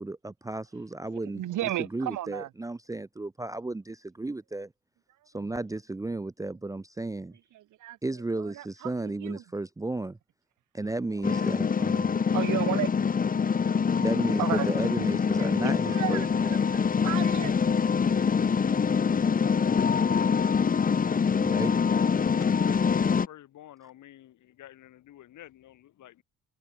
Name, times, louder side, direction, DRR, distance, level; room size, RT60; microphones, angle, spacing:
voice 1, 0.0-4.7 5.3-7.4 8.0-10.2 10.7-12.2 14.0-16.6 21.4-21.7, right 2 dB, 10° right, 0.6 m, -34 dB
voice 2, 1.3-2.5 7.5-8.0 8.4-9.4 11.3-11.5 12.3-12.9 13.9-14.1 14.4-14.7 15.4-17.6, right 14 dB, 80° right, 2.3 m, -34 dB
sound 1, 11.2-23.3, left 6 dB, 30° left, 0.8 m, -25 dB
voice 3, 22.7-26.2, left 13 dB, 75° left, 3.8 m, -50 dB
cardioid pair, 90°, 30 cm